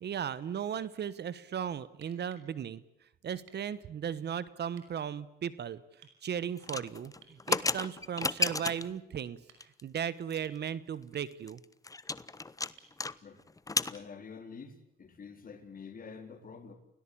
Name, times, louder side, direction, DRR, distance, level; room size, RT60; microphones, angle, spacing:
voice 1, 0.0-2.8 3.2-5.8 6.2-9.4 9.8-11.6, right 8 dB, 55° right, 17 dB, 1.3 m, -36 dB
sound 1, 2.0-2.5 3.5-3.7 4.7-4.9 6.0-6.2 7.2-7.4 8.4-8.6 9.3-9.9 10.4-10.7 12.8-13.0 14.9-15.0, right 7 dB, 80° right, 5.7 m, -60 dB
sound 2, 6.6-9.0 9.6-10.0 10.3-10.4 10.7-10.8 11.1-13.1 13.4-14.0, left 3 dB, 15° left, 0.9 m, -33 dB
voice 2, 13.9-16.7, left 5 dB, 45° left, 6 dB, 4.4 m, -47 dB
28.5 x 18.0 x 8.7 m, 0.83 s
cardioid pair, 90°, 20 cm